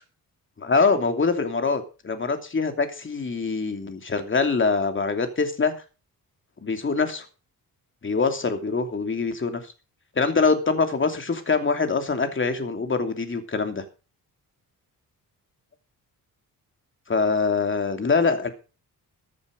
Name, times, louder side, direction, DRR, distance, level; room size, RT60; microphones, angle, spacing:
voice 1, 0.6-5.7 6.6-7.2 8.0-9.6 10.2-13.8 17.1-18.5, left 4 dB, 35° left, 7 dB, 2.9 m, -24 dB
15.0 x 9.5 x 5.2 m, 0.33 s
cardioid pair, 105°, 36 cm